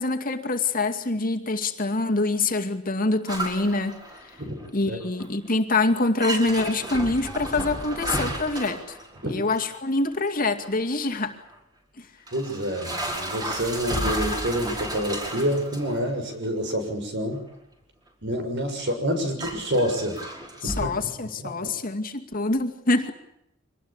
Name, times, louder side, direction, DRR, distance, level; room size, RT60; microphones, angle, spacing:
voice 1, 0.0-4.0 4.7-9.0 9.3-11.4 12.0-12.1 20.6-23.1, left 2 dB, 45° left, 6 dB, 2.3 m, -25 dB
sound 1, 3.3-4.7 5.0-5.5 5.8-5.9 6.2-9.7 10.6-10.7 11.5-11.6 12.3-16.1 16.4-16.7 17.5-17.6 18.9-19.0 19.4-20.9, right 1 dB, 20° right, 5.6 m, -32 dB
voice 2, 12.3-17.4 18.2-20.2 20.6-20.9 21.4-21.5, equal, 60° right, 6 dB, 6.6 m, -27 dB
25.0 x 20.0 x 8.9 m, 0.80 s
head